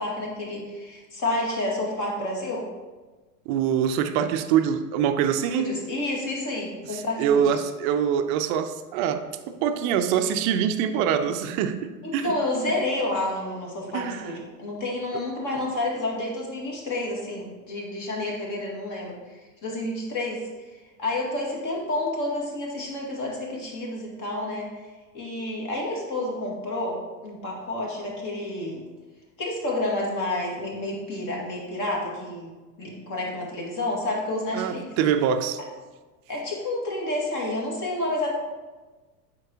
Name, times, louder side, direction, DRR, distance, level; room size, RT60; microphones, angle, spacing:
voice 1, 0.0-2.7 5.5-7.6 12.0-24.9 25.1-28.8 29.4-32.5 32.8-34.9 36.3-38.3, left 2 dB, 40° left, -2 dB, 2.1 m, -30 dB
voice 2, 3.5-5.7 6.9-12.3 13.9-14.4 34.5-35.6, right 8 dB, 40° right, 8 dB, 0.5 m, -24 dB
7.9 x 5.2 x 2.8 m, 1.3 s
hypercardioid pair, 90°, 50 cm